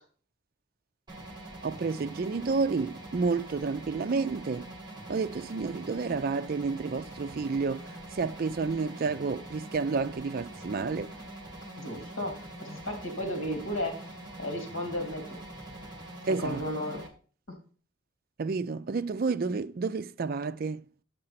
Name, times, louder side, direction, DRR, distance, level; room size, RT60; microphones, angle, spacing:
sound 1, 1.1-17.1, right 1 dB, 20° right, 1.7 m, -44 dB
voice 1, 1.6-4.7 5.1-7.9 8.1-11.1 16.3-16.6 18.4-20.8, right 4 dB, 45° right, 0.4 m, -30 dB
voice 2, 11.8-14.1 14.4-15.4 16.3-17.0 17.5-17.6, left 1 dB, 80° left, 2.6 m, -34 dB
7.7 x 6.7 x 5.7 m
head